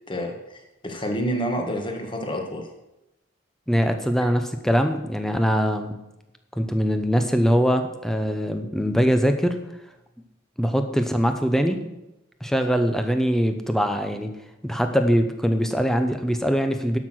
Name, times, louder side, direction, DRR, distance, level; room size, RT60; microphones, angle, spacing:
voice 1, 0.1-2.7, equal, 25° left, 3 dB, 1.5 m, -29 dB
voice 2, 3.7-6.0 6.6-9.6 10.6-11.9 12.4-14.3 14.6-17.0, equal, ahead, 6 dB, 0.8 m, -22 dB
12.0 x 6.0 x 6.3 m, 0.92 s
head